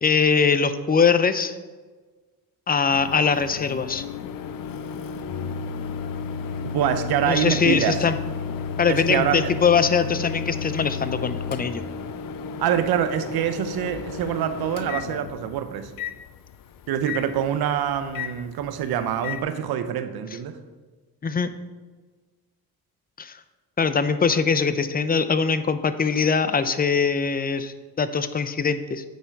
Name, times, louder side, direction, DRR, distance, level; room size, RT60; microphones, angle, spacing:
voice 1, 0.0-1.5 2.7-4.0 7.3-8.1 8.8-11.8 21.2-21.5 23.2-23.4 23.8-29.0, left 5 dB, 25° left, 12 dB, 0.6 m, -22 dB
Microwave oven, 2.9-19.4, left 5 dB, 60° left, 0.6 m, -33 dB
voice 2, 6.6-8.0 8.9-9.5 12.6-15.9 16.9-20.6, right 9 dB, 75° right, 10 dB, 0.8 m, -25 dB
9.4 x 4.4 x 4.6 m, 1.4 s
supercardioid pair, 75°, 38 cm